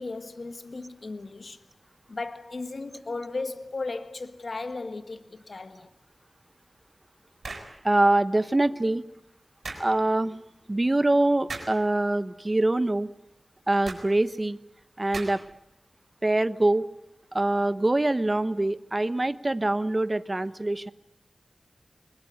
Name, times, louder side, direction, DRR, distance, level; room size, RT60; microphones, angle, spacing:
voice 1, 0.0-1.6 2.1-5.9, left 3 dB, 60° left, 1.6 m, -36 dB
Cap Slaps, 7.4-7.7 9.6-9.9 11.5-11.8 13.8-14.1 15.1-15.5, right 3 dB, 70° right, 6.3 m, -37 dB
voice 2, 7.8-9.0 9.8-10.4 10.7-13.1 13.7-14.6 15.0-15.4 16.2-16.9 17.3-20.9, right 2 dB, 30° right, 1.0 m, -24 dB
22.5 x 20.5 x 9.5 m
wide cardioid pair, 70°, 0 cm